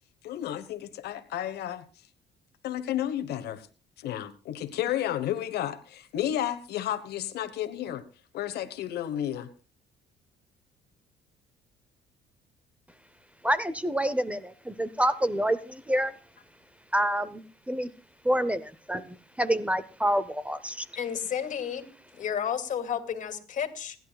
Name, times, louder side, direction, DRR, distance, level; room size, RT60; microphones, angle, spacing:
voice 1, 0.2-1.8 2.6-3.7 4.0-8.0 8.3-9.5, left 11 dB, 75° left, 10 dB, 1.2 m, -32 dB
voice 2, 13.4-16.1 16.9-17.9 18.2-20.8, right 1 dB, 10° right, 14 dB, 0.8 m, -27 dB
voice 3, 20.9-21.9 22.1-24.0, left 8 dB, 50° left, 7 dB, 2.5 m, -31 dB
30.0 x 11.0 x 2.3 m, 0.34 s
cardioid pair, 110°, 17 cm